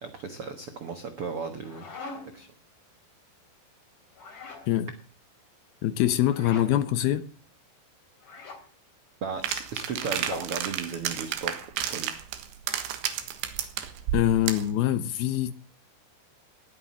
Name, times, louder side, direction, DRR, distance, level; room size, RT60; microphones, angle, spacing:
voice 1, 0.0-1.9 2.1-2.5 9.2-11.5 11.9-12.1, right 5 dB, 70° right, 1.3 m, -35 dB
sound 1, 1.4-2.5 4.1-4.7 6.2-6.7 8.2-8.6 9.9-10.5, left 4 dB, 50° left, 5.3 m, -42 dB
voice 2, 5.8-7.2 14.1-15.5, left 12 dB, 70° left, 2.7 m, -24 dB
sound 2, 9.4-14.7, right 10 dB, 90° right, 3.8 m, -32 dB
19.0 x 9.3 x 7.5 m
omnidirectional pair, 4.9 m